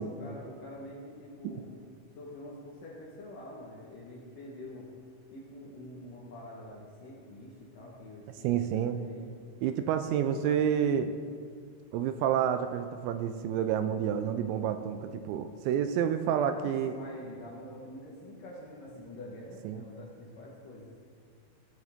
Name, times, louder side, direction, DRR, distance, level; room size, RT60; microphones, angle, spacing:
voice 1, 0.0-1.7 2.2-4.9 5.3-9.3 9.9-10.7 16.5-20.9, left 1 dB, 65° left, -5 dB, 2.2 m, -46 dB
voice 2, 8.4-9.0 9.6-11.1 11.9-16.9 19.7-19.8, right 9 dB, 85° right, 9 dB, 2.7 m, -29 dB
16.5 x 8.2 x 3.6 m, 2.2 s
omnidirectional pair, 5.4 m